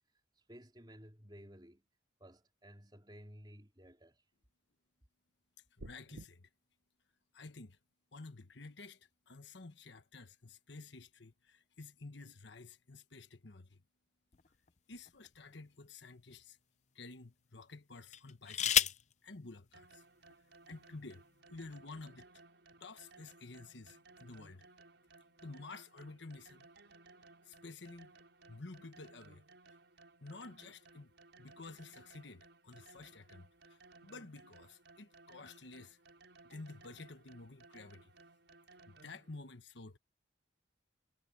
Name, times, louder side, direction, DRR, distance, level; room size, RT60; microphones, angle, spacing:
voice 1, 0.4-1.9 2.2-4.2, equal, 20° right, 4.1 m, -55 dB
voice 2, 5.8-6.5 7.3-7.8 8.1-13.8 14.9-16.6 16.9-20.0 20.7-22.3 22.8-24.7 25.4-26.7 27.4-28.1 28.5-29.4 30.2-31.1 31.4-36.0 36.4-38.1 38.9-40.0, left 3 dB, 70° left, 1.3 m, -51 dB
sound 1, 5.8-6.3, right 2 dB, 85° right, 1.1 m, -49 dB
sound 2, 14.3-15.6 16.3-16.4 18.1-19.1 20.3-20.4 20.7-21.1, left 10 dB, 35° left, 0.6 m, -33 dB
sound 3, 19.7-39.4, right 3 dB, 65° right, 6.4 m, -61 dB
head